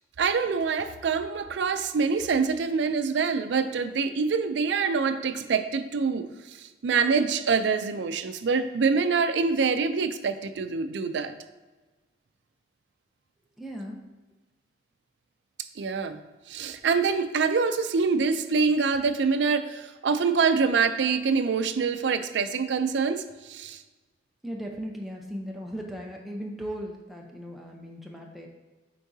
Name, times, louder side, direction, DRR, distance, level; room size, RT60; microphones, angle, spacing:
voice 1, 0.2-11.3 15.8-16.2 16.5-23.8, right 5 dB, 75° right, 10 dB, 0.4 m, -25 dB
voice 2, 13.6-14.0 24.4-28.5, equal, ahead, -1 dB, 0.6 m, -37 dB
8.4 x 4.5 x 2.7 m, 1.2 s
head